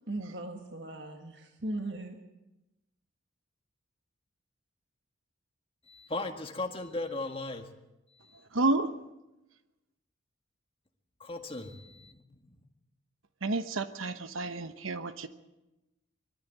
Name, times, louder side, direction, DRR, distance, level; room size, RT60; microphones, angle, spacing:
voice 1, 0.1-2.2, right 1 dB, 60° right, 4 dB, 1.7 m, -38 dB
voice 2, 5.9-7.7 8.3-8.4 11.2-12.2, left 2 dB, 25° left, 5 dB, 1.8 m, -37 dB
voice 3, 8.5-8.9 13.4-15.3, right 2 dB, 90° right, 10 dB, 1.0 m, -30 dB
22.0 x 14.0 x 9.2 m, 0.98 s
head